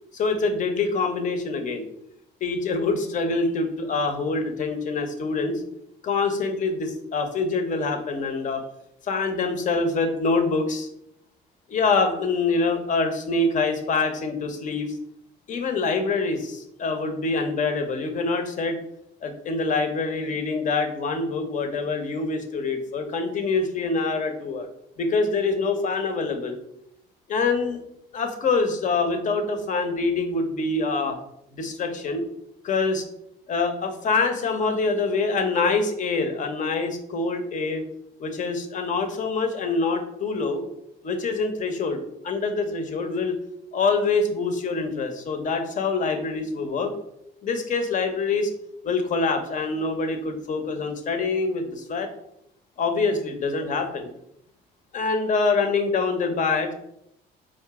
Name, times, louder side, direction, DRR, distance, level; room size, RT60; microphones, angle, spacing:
voice 1, 0.1-1.8 2.4-5.6 6.0-8.6 9.0-10.9 11.7-15.0 15.5-18.8 19.2-24.7 25.0-26.6 27.3-27.8 28.1-31.2 31.5-32.2 32.6-33.1 33.5-37.8 38.2-40.6 41.0-42.0 42.2-43.4 43.7-46.9 47.4-48.5 48.8-52.1 52.8-54.1 54.9-56.7, left 3 dB, 50° left, 6 dB, 0.8 m, -25 dB
4.8 x 2.5 x 3.6 m, 0.75 s
cardioid pair, 110°, 17 cm